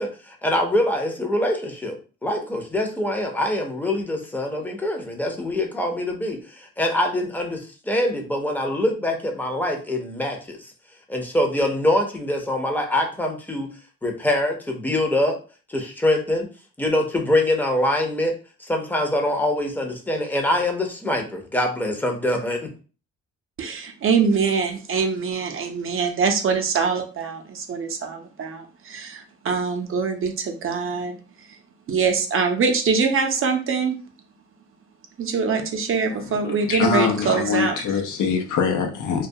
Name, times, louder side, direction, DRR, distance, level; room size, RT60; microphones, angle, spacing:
voice 1, 0.0-1.9 2.2-10.6 11.1-13.7 14.0-15.4 15.7-16.5 16.8-22.7, left 1 dB, 5° left, 0.6 m, -24 dB
voice 2, 23.6-31.1 31.9-34.0 35.2-37.8, right 5 dB, 45° right, 0.5 m, -23 dB
voice 3, 36.1-39.3, left 6 dB, 75° left, 0.6 m, -24 dB
2.3 x 2.1 x 2.7 m
cardioid pair, 90°, 30 cm